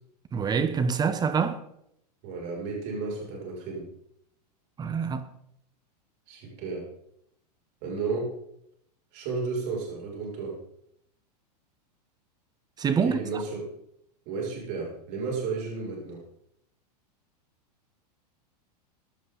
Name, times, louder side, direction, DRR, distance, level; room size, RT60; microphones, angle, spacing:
voice 1, 0.3-1.6 4.8-5.3 12.8-13.2, right 6 dB, 20° right, 0.9 m, -26 dB
voice 2, 2.2-3.9 6.3-6.8 7.8-8.3 9.1-10.6 13.0-13.7 14.3-16.2, right 4 dB, 50° right, 6.4 m, -33 dB
16.5 x 11.0 x 4.0 m
hypercardioid pair, 125°, 21 cm